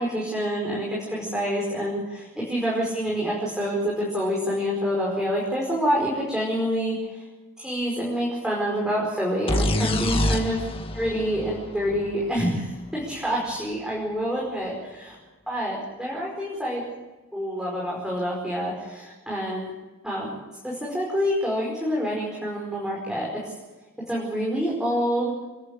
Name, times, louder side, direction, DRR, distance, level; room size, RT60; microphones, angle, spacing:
voice 1, 0.0-7.2 7.6-10.6 10.9-15.2 15.5-16.8 17.3-19.7 20.0-20.4 20.6-23.5 24.1-25.3, equal, 5° right, -5 dB, 5.1 m, -27 dB
sound 1, 9.5-13.2, left 1 dB, 25° left, 1.5 m, -27 dB
29.0 x 11.0 x 8.9 m, 1.2 s
head